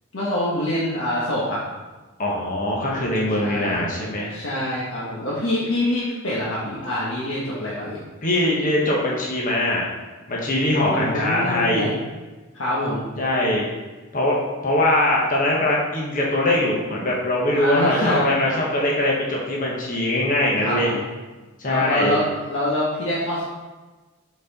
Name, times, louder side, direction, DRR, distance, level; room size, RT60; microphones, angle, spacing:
voice 1, 0.1-1.6 3.4-3.8 4.3-8.0 10.8-11.9 12.5-13.1 17.5-18.3 20.6-21.0 21.6-23.5, left 1 dB, 75° left, -7 dB, 1.2 m, -25 dB
voice 2, 2.2-4.4 8.2-9.9 10.3-11.9 13.2-13.6 14.1-14.4 14.6-20.9 21.6-22.2, left 1 dB, 40° left, -3 dB, 1.1 m, -22 dB
6.1 x 4.2 x 4.1 m, 1.2 s
head